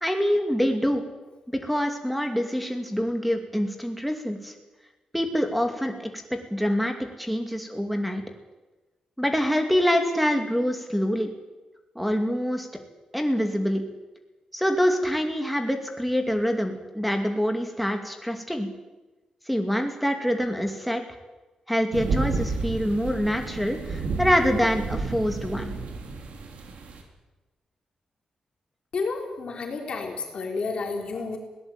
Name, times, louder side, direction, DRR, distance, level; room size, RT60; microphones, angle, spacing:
voice 1, 0.0-1.0 1.6-4.5 5.1-8.2 9.2-11.3 12.0-12.7 13.1-13.8 14.5-18.7 19.5-21.0 21.7-25.7, equal, ahead, 4 dB, 2.5 m, -25 dB
sound 1, 21.9-27.0, right 3 dB, 75° right, 3.9 m, -31 dB
voice 2, 28.9-31.4, left 4 dB, 45° left, 2 dB, 3.8 m, -31 dB
21.0 x 18.0 x 8.9 m, 1.1 s
wide cardioid pair, 170°, 2 cm